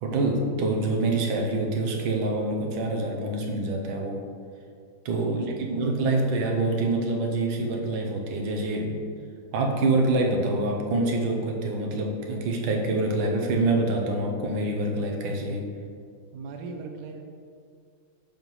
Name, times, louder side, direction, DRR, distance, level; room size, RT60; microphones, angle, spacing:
voice 1, 0.0-4.3 5.0-5.4 5.7-9.0 9.5-15.7, right 2 dB, 85° right, 1 dB, 1.6 m, -26 dB
voice 2, 5.1-5.6 6.0-6.2 16.3-17.2, right 4 dB, 70° right, 4 dB, 1.1 m, -39 dB
7.0 x 5.5 x 3.0 m, 2.2 s
omnidirectional pair, 2.1 m